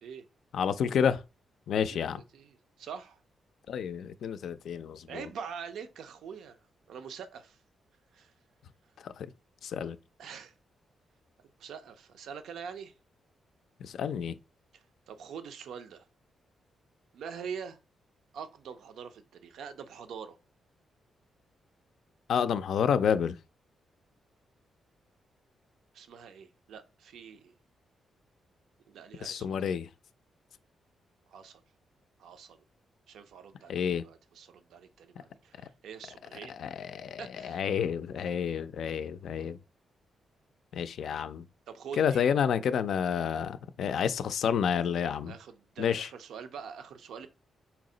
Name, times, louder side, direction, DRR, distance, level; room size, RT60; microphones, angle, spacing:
voice 1, 0.5-1.2 1.7-2.2 3.7-5.1 9.0-9.3 9.6-10.0 13.8-14.4 22.3-23.4 29.2-29.9 33.7-34.0 36.3-39.6 40.7-41.4 42.0-45.3 45.8-46.1, left 7 dB, 75° left, 0.3 m, -29 dB
voice 2, 1.9-3.2 5.1-6.6 6.9-7.6 8.1-8.3 10.2-10.5 11.6-12.9 14.7-16.1 17.1-17.8 18.3-20.4 25.9-27.5 28.9-29.7 31.3-31.6 32.2-32.6 33.1-36.6 37.2-37.6 41.7-42.2 45.3-47.3, right 7 dB, 80° right, 0.5 m, -44 dB
4.4 x 2.0 x 3.7 m
cardioid pair, 75°, 0 cm